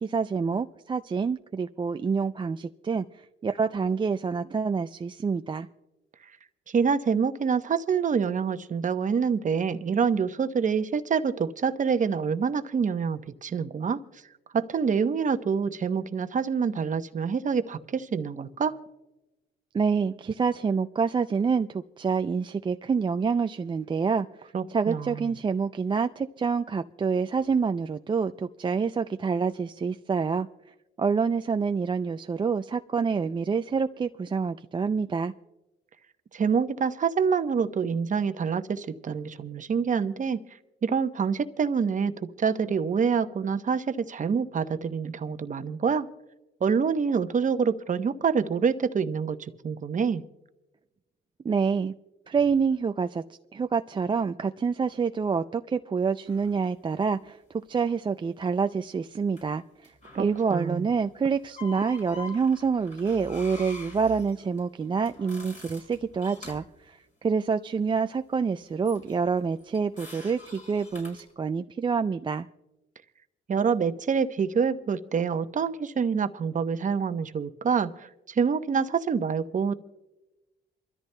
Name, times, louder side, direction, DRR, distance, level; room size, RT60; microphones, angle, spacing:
voice 1, 0.0-3.0 3.4-5.7 19.7-24.3 24.7-30.5 31.0-35.3 51.4-51.9 52.3-53.2 53.5-59.6 60.2-72.5, right 5 dB, 25° right, 8 dB, 0.4 m, -27 dB
voice 2, 6.7-14.0 14.5-18.7 24.5-25.4 36.3-40.4 40.8-46.1 46.6-50.2 60.1-60.9 73.5-79.7, right 6 dB, 40° right, 10 dB, 0.8 m, -26 dB
sound 1, 56.3-56.5 59.4-59.5 59.8-60.8 61.4-66.7 68.8-71.3, left 3 dB, 40° left, 5.3 m, -46 dB
28.0 x 13.5 x 2.2 m, 1.0 s
cardioid pair, 90°, 20 cm